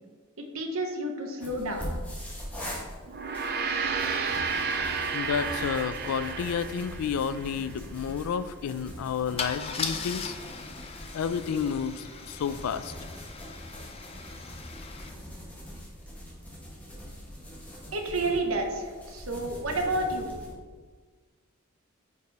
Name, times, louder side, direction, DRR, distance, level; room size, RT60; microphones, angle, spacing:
voice 1, 0.5-2.0 17.9-20.3, right 2 dB, 75° right, 3 dB, 0.9 m, -30 dB
sound 1, 1.4-20.5, equal, 5° left, 1.1 m, -43 dB
Gong, 3.1-7.7, right 5 dB, 50° right, 0.5 m, -31 dB
voice 2, 5.1-10.4 11.1-12.9, left 7 dB, 90° left, 14 dB, 0.3 m, -31 dB
Car / Engine starting / Idling, 6.8-6.9 7.1-7.4 9.4-15.1, left 5 dB, 30° left, 0.5 m, -39 dB
5.2 x 4.2 x 4.6 m, 1.5 s
head